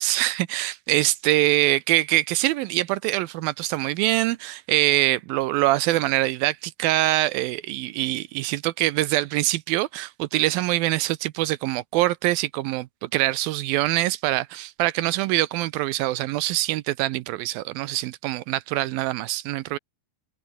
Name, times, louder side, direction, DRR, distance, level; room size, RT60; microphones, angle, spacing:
voice 1, 0.0-19.8, right 17 dB, 80° right, 2.4 m, -24 dB
omnidirectional pair, 4.4 m